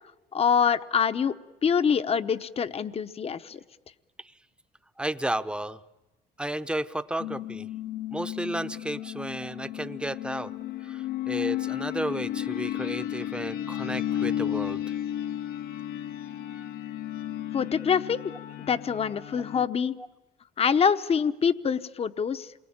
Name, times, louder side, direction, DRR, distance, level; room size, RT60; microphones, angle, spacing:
voice 1, 0.3-1.3 1.6-3.6 17.5-18.2 18.7-19.9 20.6-22.5, left 7 dB, 35° left, 11 dB, 1.0 m, -25 dB
voice 2, 5.0-5.8 6.4-7.7 8.1-10.5 10.8-15.0, right 1 dB, 5° right, 11 dB, 0.9 m, -33 dB
sound 1, 7.2-19.7, left 12 dB, 65° left, 1.1 m, -33 dB
28.0 x 23.0 x 8.9 m, 1.0 s
cardioid pair, 110°, 17 cm